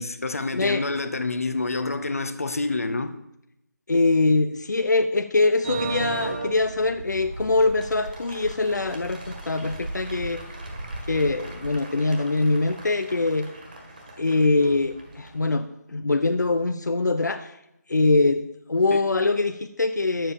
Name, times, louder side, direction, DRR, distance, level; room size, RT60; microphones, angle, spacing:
voice 1, 0.0-3.2 18.9-19.0, left 3 dB, 55° left, 1.2 m, -28 dB
voice 2, 0.5-0.8 3.9-10.4 11.1-13.5 14.2-17.6 17.9-18.4 18.7-20.3, left 3 dB, 75° left, 0.9 m, -23 dB
sound 1, 5.6-15.4, right 3 dB, 25° right, 1.7 m, -36 dB
11.0 x 7.7 x 6.9 m
figure-of-eight pair, 180°, 10 cm